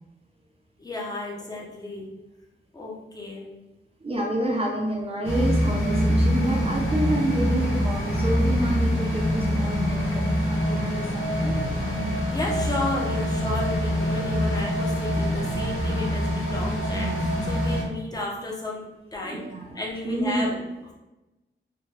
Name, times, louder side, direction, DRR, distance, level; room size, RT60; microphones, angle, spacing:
voice 1, 0.8-2.1 2.7-3.5 12.3-19.4 19.7-20.5, left 2 dB, 20° left, -3 dB, 0.6 m, -33 dB
voice 2, 4.0-11.6 19.2-19.8 20.0-20.6, right 1 dB, 30° right, -1 dB, 0.4 m, -29 dB
sound 1, 5.2-17.8, equal, 85° left, 0.7 m, -25 dB
2.8 x 2.2 x 3.1 m, 1.0 s
wide cardioid pair, 140°, 20 cm